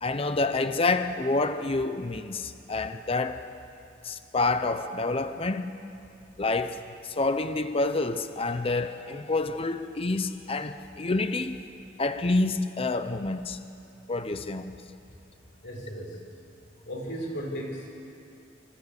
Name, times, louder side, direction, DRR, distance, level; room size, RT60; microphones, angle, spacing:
voice 1, 0.0-3.4 4.0-5.7 6.4-6.8 7.2-11.6 12.0-13.6 14.1-14.8, left 3 dB, 30° left, 0.6 m, -28 dB
voice 2, 15.6-16.2 16.9-17.9, equal, 65° left, 5.1 m, -35 dB
25.0 x 13.0 x 8.2 m
head